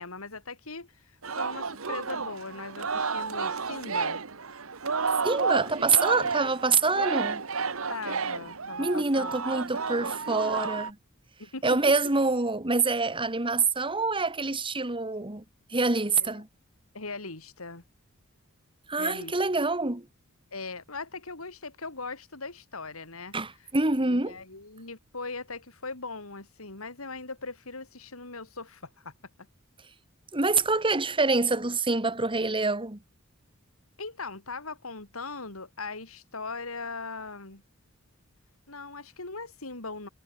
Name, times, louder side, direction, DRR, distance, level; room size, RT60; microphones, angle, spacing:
voice 1, 0.0-4.2 7.9-9.4 11.4-11.8 16.2-16.4 16.9-17.8 19.0-19.4 20.5-23.4 24.0-29.1 34.0-37.6 38.7-40.1, left 3 dB, 90° left, 3.8 m, -39 dB
Singing, 1.2-10.9, right 5 dB, 75° right, 1.5 m, -31 dB
voice 2, 5.2-7.4 8.8-11.0 11.6-15.4 15.7-16.5 18.9-20.1 23.3-24.4 30.3-33.0, right 3 dB, 25° right, 2.0 m, -26 dB
head